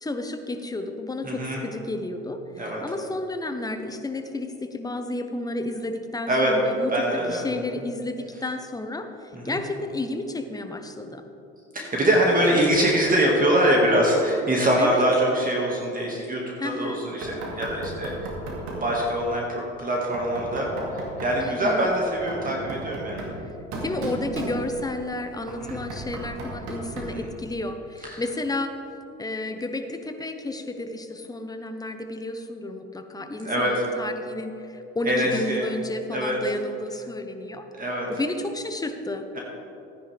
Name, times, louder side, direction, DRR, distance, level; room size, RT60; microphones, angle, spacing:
voice 1, 0.0-6.9 7.3-11.2 14.8-15.1 16.6-17.0 21.4-21.9 23.4-23.5 23.8-28.7 29.2-37.7 38.1-39.3, left 2 dB, 10° left, 6 dB, 1.0 m, -32 dB
voice 2, 1.2-1.6 2.6-2.8 6.3-6.6 6.9-7.4 9.3-9.5 11.7-18.1 18.8-23.3 25.6-25.8 27.1-27.2 28.0-28.2 33.4-33.7 35.0-35.6 36.1-36.4 37.7-38.1, right 1 dB, 25° right, -2 dB, 2.0 m, -23 dB
Knock, 17.2-18.9 20.1-21.4 22.1-25.0 25.5-27.3, right 1 dB, 65° right, 2.5 m, -35 dB
14.0 x 9.9 x 3.5 m, 2.9 s
hypercardioid pair, 70°, 31 cm